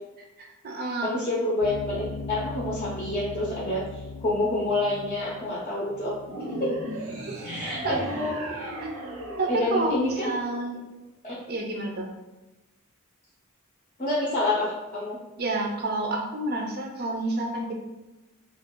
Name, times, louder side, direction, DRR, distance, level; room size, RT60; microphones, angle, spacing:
voice 1, 0.4-1.1 7.3-8.0 8.8-8.9 9.4-10.8 11.5-12.1 15.4-17.7, right 2 dB, 45° right, 1 dB, 0.5 m, -29 dB
voice 2, 1.0-3.8 4.2-6.7 7.4-8.7 9.5-10.3 11.2-11.4 14.0-15.2, left 2 dB, 30° left, -6 dB, 0.6 m, -28 dB
sound 1, 1.6-8.1, left 4 dB, 90° left, 0.3 m, -40 dB
sound 2, 6.3-10.8, right 1 dB, 80° right, 0.7 m, -36 dB
2.4 x 2.3 x 3.6 m, 1.1 s
head